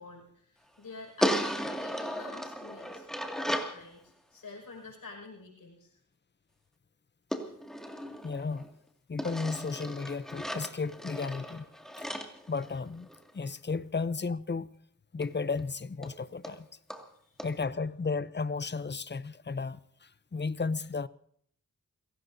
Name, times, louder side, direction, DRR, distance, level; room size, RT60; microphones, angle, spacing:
voice 1, 0.0-3.1 3.4-6.0 17.2-17.4, left 3 dB, 85° left, 5.5 m, -48 dB
sound 1, 1.2-3.8 7.3-8.7 9.2-13.3 15.2-15.3 15.6-15.7 16.0-16.1 16.4-16.6 16.9-17.0 17.4-17.5, equal, ahead, 2.1 m, -35 dB
voice 2, 8.2-8.6 9.1-11.7 12.0-12.1 12.5-13.1 13.3-14.7 15.1-16.7 17.4-21.1, left 4 dB, 35° left, 0.6 m, -34 dB
29.0 x 17.5 x 2.7 m
wide cardioid pair, 80°, 33 cm